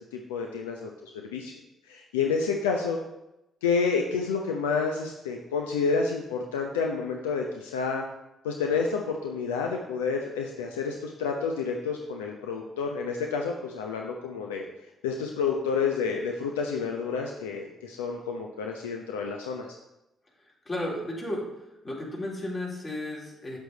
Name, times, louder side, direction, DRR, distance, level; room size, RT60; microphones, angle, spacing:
voice 1, 0.0-1.5 1.9-3.0 3.6-8.0 8.4-14.7 15.0-19.7, left 5 dB, 80° left, 2 dB, 0.7 m, -29 dB
voice 2, 20.7-21.5 21.8-23.6, left 1 dB, 35° left, -3 dB, 3.8 m, -33 dB
8.3 x 8.0 x 4.1 m, 0.91 s
hypercardioid pair, 45°, 0 cm